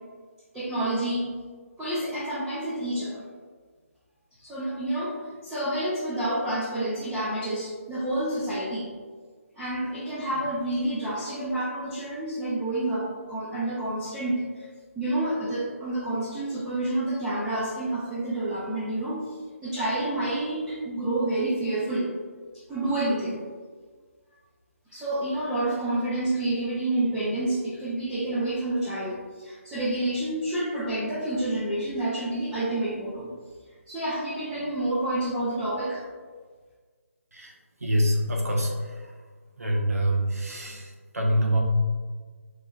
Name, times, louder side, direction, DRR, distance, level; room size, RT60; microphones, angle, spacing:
voice 1, 0.5-1.4 1.8-3.2 4.4-8.9 9.6-14.6 15.0-19.3 19.6-22.1 22.7-23.4 24.9-33.3 33.9-36.0, right 1 dB, 10° right, -11 dB, 0.6 m, -29 dB
voice 2, 37.8-38.7 39.6-41.6, equal, 85° right, -1 dB, 1.0 m, -25 dB
4.9 x 3.2 x 2.4 m, 1.5 s
figure-of-eight pair, 155°, 8 cm